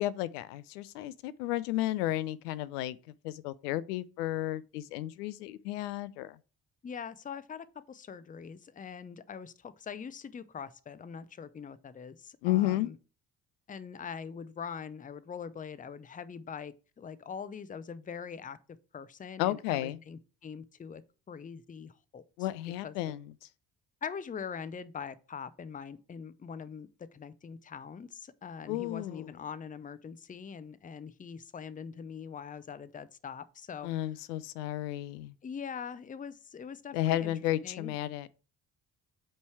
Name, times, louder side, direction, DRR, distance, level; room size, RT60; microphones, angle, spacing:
voice 1, 0.0-3.0 3.2-6.4 12.4-12.9 19.4-20.0 22.4-23.3 28.7-29.3 33.8-35.3 36.9-38.3, left 14 dB, 70° left, 0.5 m, -32 dB
voice 2, 6.8-13.0 13.7-18.6 18.9-21.0 21.3-22.2 22.8-23.2 24.0-33.9 35.4-37.3 37.6-37.9, left 6 dB, 15° left, 0.6 m, -43 dB
8.1 x 3.3 x 4.5 m
figure-of-eight pair, 45°, 49 cm